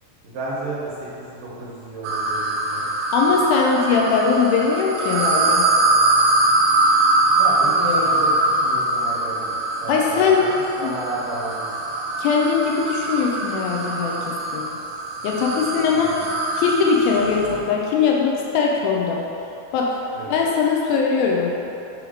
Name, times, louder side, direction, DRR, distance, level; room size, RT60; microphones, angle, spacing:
voice 1, 0.2-2.9 7.3-9.5 9.8-10.3 10.8-11.7 15.9-16.3 20.1-20.3, right 2 dB, 70° right, -6 dB, 2.2 m, -32 dB
sound 1, 2.0-17.7, right 2 dB, 90° right, 1.8 m, -22 dB
voice 2, 3.1-5.6 7.8-8.2 9.9-10.4 10.8-10.9 12.2-14.7 15.2-16.2 16.6-19.2 19.7-19.9 20.3-21.5, left 5 dB, 80° left, -1 dB, 2.3 m, -20 dB
6.3 x 3.1 x 4.8 m, 2.9 s
omnidirectional pair, 4.3 m